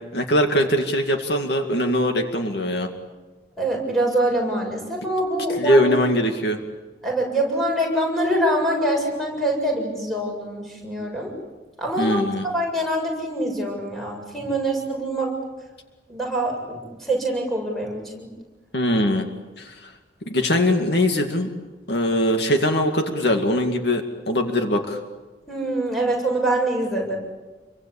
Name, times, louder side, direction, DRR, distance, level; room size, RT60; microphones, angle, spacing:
voice 1, 0.1-2.9 5.6-6.6 12.0-12.5 18.7-19.3 19.6-19.9 20.3-21.5 21.9-25.0, left 1 dB, 65° left, 4 dB, 2.3 m, -21 dB
voice 2, 3.6-5.9 7.0-11.3 11.8-12.2 12.5-15.3 16.1-18.3 25.5-27.2, right 1 dB, ahead, -1 dB, 7.4 m, -24 dB
28.5 x 24.0 x 8.6 m, 1.2 s
head